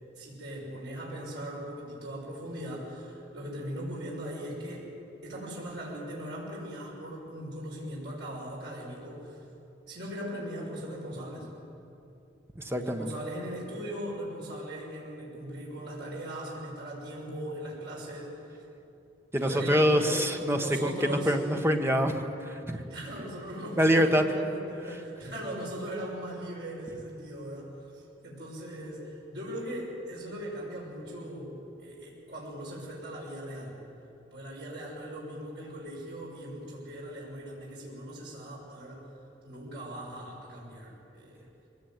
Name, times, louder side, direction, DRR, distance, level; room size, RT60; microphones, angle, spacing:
voice 1, 0.2-4.9 5.2-9.4 9.9-11.5 12.8-18.4 19.4-21.3 22.7-33.8 34.3-39.1 39.4-41.4, right 1 dB, 65° right, -4 dB, 6.2 m, -39 dB
voice 2, 12.6-13.1 19.3-22.8 23.8-24.2, equal, 15° right, 4 dB, 1.4 m, -25 dB
23.0 x 18.5 x 9.2 m, 2.8 s
head